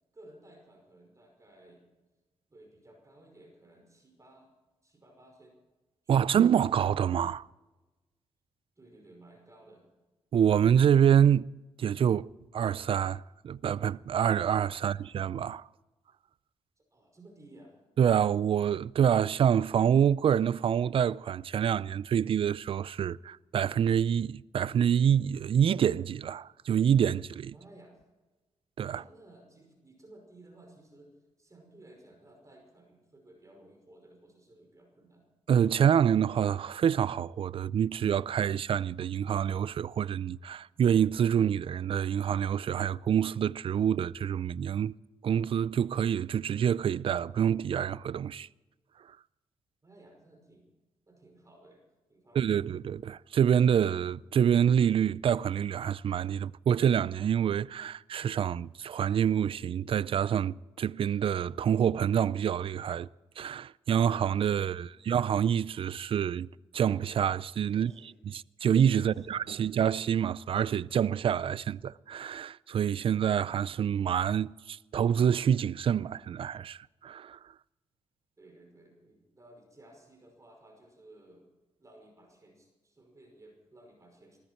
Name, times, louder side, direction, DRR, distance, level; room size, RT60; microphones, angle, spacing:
voice 1, 0.1-1.8 2.5-4.5 4.8-5.6 6.0-6.4 8.8-9.9 16.9-17.8 27.5-28.0 28.9-35.3 49.8-50.7 51.1-52.7 64.7-65.1 67.7-68.1 69.0-69.7 78.4-81.5 81.8-84.4, right 1 dB, 30° right, 5.4 m, -56 dB
voice 2, 6.1-7.5 10.3-11.5 11.8-15.7 18.0-27.5 28.8-29.0 35.5-44.9 45.2-48.5 52.3-63.1 63.4-66.5 66.7-67.9 68.3-77.4, right 8 dB, 55° right, 0.4 m, -27 dB
21.0 x 14.0 x 4.4 m
cardioid pair, 65°, 11 cm